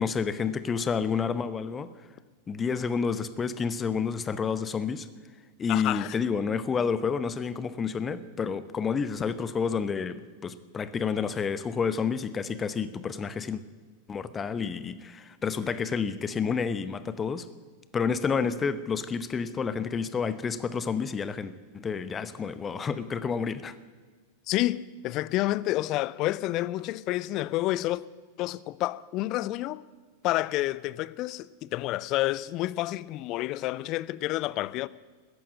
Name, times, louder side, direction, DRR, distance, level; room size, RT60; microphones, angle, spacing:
voice 1, 0.0-1.9 2.5-5.1 5.6-13.6 14.1-17.5 17.9-23.7, left 6 dB, 20° left, 0.8 m, -29 dB
voice 2, 5.7-6.2 24.5-28.0 28.4-29.8 30.2-34.9, left 16 dB, 40° left, 0.5 m, -29 dB
14.5 x 10.5 x 8.5 m
figure-of-eight pair, 90°, 0 cm